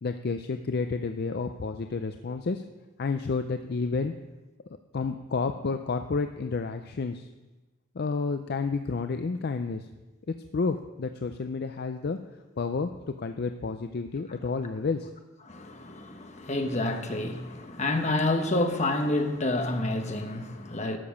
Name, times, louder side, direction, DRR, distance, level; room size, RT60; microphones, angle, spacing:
voice 1, 0.0-2.6 3.0-4.1 4.9-7.3 8.0-9.9 10.5-12.2 12.6-15.1, left 4 dB, 50° left, 0.4 m, -30 dB
voice 2, 15.5-21.0, left 2 dB, 35° left, 1.1 m, -28 dB
12.5 x 6.9 x 6.3 m
head